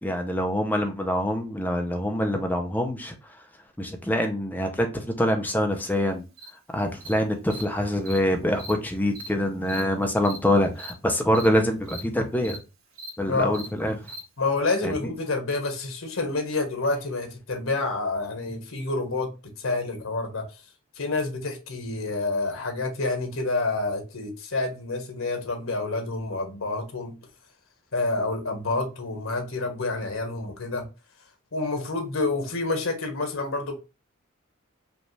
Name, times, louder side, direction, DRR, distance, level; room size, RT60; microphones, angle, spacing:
voice 1, 0.0-3.1 3.8-6.2 6.7-12.6 13.2-14.0 14.8-14.9, left 1 dB, 10° left, 0.6 m, -25 dB
Cricket, 6.4-6.5 7.0-7.1 7.5-7.6 8.1-8.2 8.5-8.7 9.1-9.3 9.7-9.8 10.2-10.4 10.7-10.9 11.3-11.5 11.8-12.0 12.4-12.6 12.9-13.1 13.5-13.7 14.1-14.2, right 2 dB, 90° right, 1.8 m, -39 dB
voice 2, 13.3-13.6 14.4-20.5 20.9-27.2 27.9-30.9 31.5-33.8, left 3 dB, 85° left, 1.2 m, -28 dB
5.1 x 2.5 x 3.2 m
head